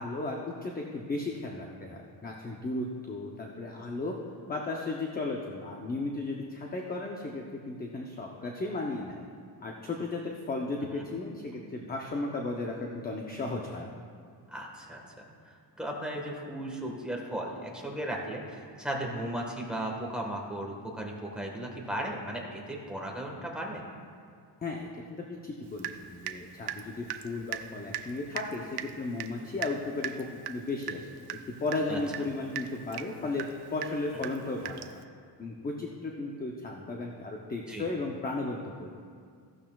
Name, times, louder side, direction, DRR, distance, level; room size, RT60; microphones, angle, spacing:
voice 1, 0.0-4.2 4.5-9.2 9.6-13.9 24.6-31.1 31.6-34.8 35.4-38.9, left 2 dB, 20° left, 0 dB, 0.6 m, -35 dB
voice 2, 14.5-23.8 31.9-32.0 34.1-34.2 37.7-37.8, right 1 dB, ahead, -2 dB, 1.3 m, -36 dB
Water tap faucet / Drip, 25.8-26.4 26.7-35.0, right 10 dB, 70° right, 0.6 m, -39 dB
15.0 x 11.5 x 2.3 m, 2.2 s
wide cardioid pair, 170°, 42 cm